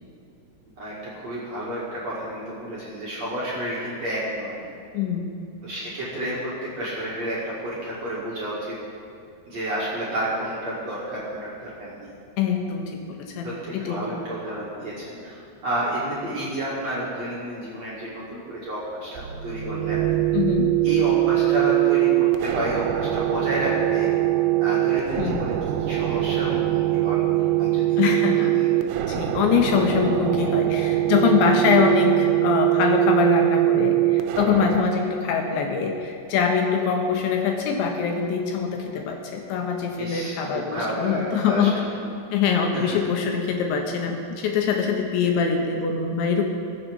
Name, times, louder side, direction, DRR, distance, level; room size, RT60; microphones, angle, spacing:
voice 1, 0.8-4.6 5.6-8.7 9.5-12.1 13.4-20.0 20.8-24.1 24.6-27.2 27.6-28.0 28.3-28.7 40.0-41.9 42.7-43.0, right 1 dB, 45° right, -8 dB, 2.4 m, -31 dB
voice 2, 4.9-5.3 12.4-14.0 20.3-20.7 25.2-25.4 28.0-28.6 29.1-41.8 42.3-46.4, left 6 dB, 75° left, 2 dB, 3.0 m, -23 dB
sound 1, 19.2-34.8, right 16 dB, 80° right, 3.0 m, -22 dB
20.5 x 7.5 x 5.3 m, 2.6 s
omnidirectional pair, 5.7 m